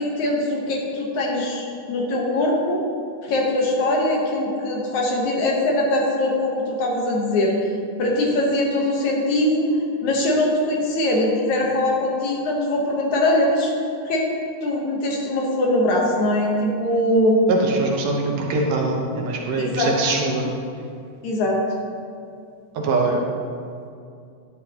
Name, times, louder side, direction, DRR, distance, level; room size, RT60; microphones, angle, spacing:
voice 1, 0.0-2.8 3.2-7.5 8.0-9.7 10.0-13.7 14.1-14.2 14.6-17.4 19.6-19.9 21.2-21.6, left 1 dB, 65° left, -1 dB, 2.4 m, -22 dB
voice 2, 17.5-20.5 22.7-23.2, right 3 dB, 75° right, -1 dB, 2.6 m, -23 dB
11.0 x 10.0 x 2.9 m, 2.4 s
omnidirectional pair, 3.8 m